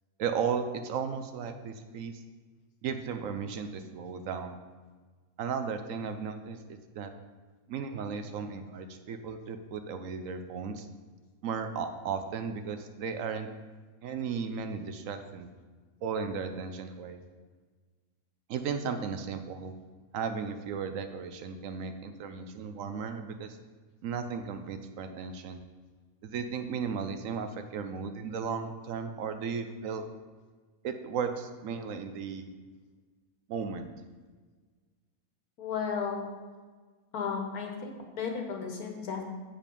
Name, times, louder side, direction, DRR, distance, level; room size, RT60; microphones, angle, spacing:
voice 1, 0.2-2.2 2.8-4.6 5.4-6.6 6.9-7.1 7.7-10.9 11.4-13.5 14.0-15.5 16.0-17.2 18.5-19.8 20.1-23.6 24.0-25.6 26.2-30.1 30.8-32.5 33.5-33.9, right 6 dB, 70° right, 8 dB, 1.0 m, -35 dB
voice 2, 35.6-36.3 37.1-39.2, left 6 dB, 85° left, 2 dB, 1.6 m, -34 dB
7.5 x 5.1 x 5.3 m, 1.4 s
omnidirectional pair, 1.5 m